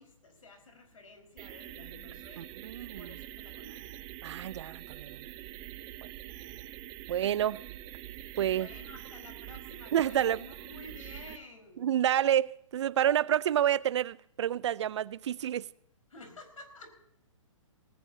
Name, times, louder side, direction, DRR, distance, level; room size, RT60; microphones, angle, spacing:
voice 1, 0.0-2.5 3.0-4.0 8.5-11.9 16.1-17.0, left 2 dB, 90° left, 4.7 m, -51 dB
sound 1, 1.4-11.4, right 13 dB, 25° right, 0.9 m, -45 dB
voice 2, 2.4-3.2 4.2-5.2 7.1-7.6 8.4-8.7 9.9-10.4 11.8-15.7, right 10 dB, 60° right, 0.5 m, -29 dB
18.5 x 16.5 x 2.8 m
hypercardioid pair, 145°, 17 cm